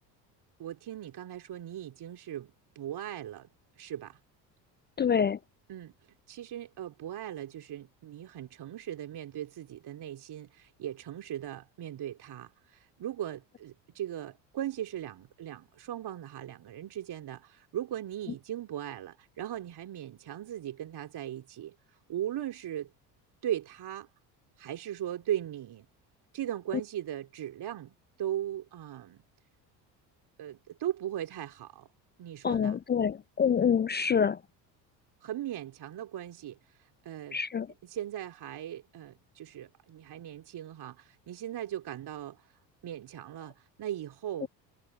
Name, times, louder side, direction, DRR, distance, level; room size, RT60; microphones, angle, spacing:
voice 1, 0.6-2.5 2.8-3.5 3.8-4.2 5.7-5.9 6.3-22.9 23.4-24.1 24.6-25.9 26.3-29.2 30.4-31.9 32.2-32.8 35.2-37.4 37.8-44.5, right 11 dB, 50° right, 3.6 m, -38 dB
voice 2, 5.0-5.4 32.4-34.4 37.3-37.7 44.4-44.5, left 7 dB, 20° left, 0.4 m, -26 dB
hypercardioid pair, 65°, 50 cm